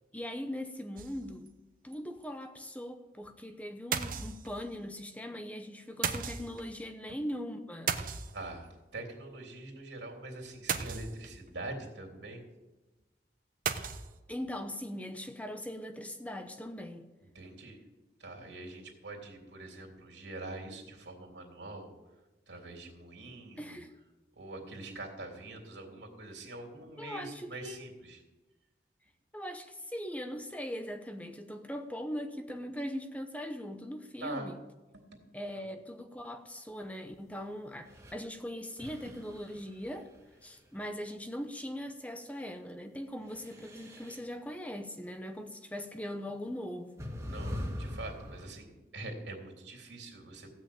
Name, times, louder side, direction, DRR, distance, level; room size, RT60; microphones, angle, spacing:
voice 1, 0.1-1.5 1.8-7.9 14.3-17.1 23.6-23.9 27.0-27.9 29.3-34.6 35.3-40.1 40.4-47.0, equal, 10° left, 7 dB, 0.8 m, -40 dB
sound 1, 1.0-1.5 1.9-2.0 2.2-2.3 3.9-4.8 6.0-6.7 7.9-8.7 10.7-11.5 13.7-14.2, right 6 dB, 50° right, 0.8 m, -35 dB
voice 2, 8.3-12.4 17.2-17.8 18.2-21.9 22.5-23.8 24.3-28.2 34.2-34.5 34.9-35.2 35.5-35.7 39.0-39.1 47.3-50.5, right 2 dB, 80° right, 2 dB, 3.3 m, -44 dB
sound 2, 37.8-38.1 38.8-40.8 43.2-44.3 45.8-45.9 47.0-48.5, left 1 dB, 15° right, 2.0 m, -42 dB
16.0 x 6.2 x 8.8 m, 1.1 s
head